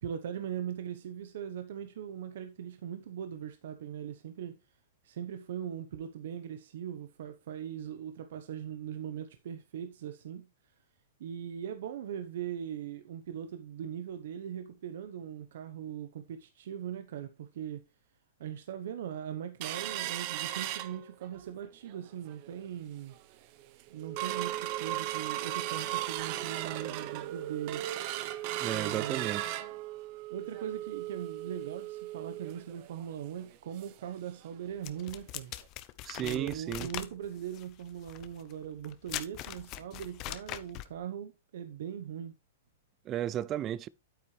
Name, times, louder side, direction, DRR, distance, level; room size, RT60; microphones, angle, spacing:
voice 1, 0.0-4.6 5.0-10.5 11.2-17.8 18.4-23.2 23.9-27.9 28.7-29.4 30.3-35.5 36.2-42.3, right 9 dB, 65° right, 1.0 m, -40 dB
sound 1, 19.6-21.5 21.9-22.0 22.3-22.7 23.2-23.3 23.6-34.1 34.4-34.5 34.9-35.1 35.6-35.7, right 14 dB, 40° right, 0.8 m, -37 dB
voice 2, 28.6-29.5 36.0-36.9 43.1-43.9, right 11 dB, 25° right, 0.4 m, -34 dB
sound 2, 34.8-41.0, left 15 dB, 30° left, 0.6 m, -42 dB
8.8 x 8.8 x 3.2 m
hypercardioid pair, 155°, 0 cm